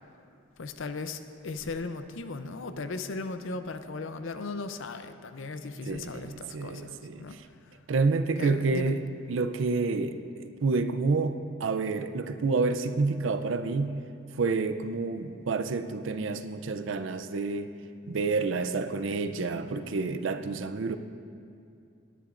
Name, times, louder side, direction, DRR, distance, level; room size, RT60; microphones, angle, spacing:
voice 1, 0.6-7.4 7.6-7.8 8.4-8.9, left 3 dB, 70° left, 9 dB, 0.6 m, -37 dB
voice 2, 5.9-7.2 7.9-9.0 9.3-14.0 14.4-17.7 18.1-21.0, right 4 dB, 70° right, 9 dB, 0.5 m, -29 dB
18.0 x 10.0 x 2.5 m, 2.5 s
head